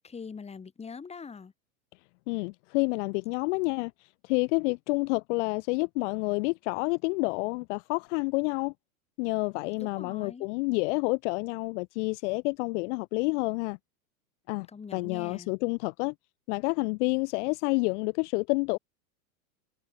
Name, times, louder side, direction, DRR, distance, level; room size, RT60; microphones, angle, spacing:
voice 1, 0.0-1.5 9.8-10.5 14.7-15.5, left 5 dB, 15° left, 2.9 m, -43 dB
voice 2, 2.3-3.9 4.2-8.7 9.2-13.8 14.5-14.7 14.9-16.1 16.5-18.8, left 28 dB, 50° left, 1.0 m, -29 dB
supercardioid pair, 125°, 43 cm